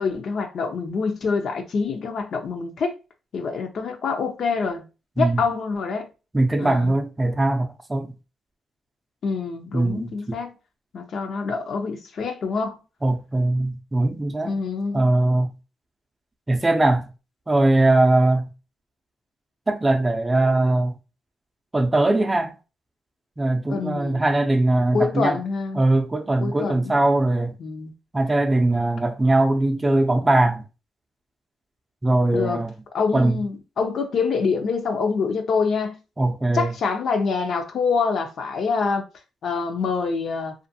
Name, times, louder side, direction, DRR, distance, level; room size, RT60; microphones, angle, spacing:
voice 1, 0.0-2.9 3.3-4.9 5.2-6.1 6.6-6.9 9.2-10.5 10.9-12.8 14.4-15.1 23.7-24.2 24.9-25.8 26.4-27.0 27.6-27.9 32.3-32.6 32.9-36.0 36.5-39.0 39.4-40.5, left 5 dB, 60° left, 0.6 m, -26 dB
voice 2, 6.3-8.1 9.7-10.4 13.0-14.5 14.9-15.5 16.5-17.1 17.5-18.5 19.7-21.0 21.7-22.5 23.4-25.4 25.7-27.6 28.1-30.6 32.0-32.7 33.1-33.4 36.2-36.7, right 2 dB, 15° right, 0.5 m, -21 dB
2.5 x 2.4 x 2.7 m
cardioid pair, 90°, 0 cm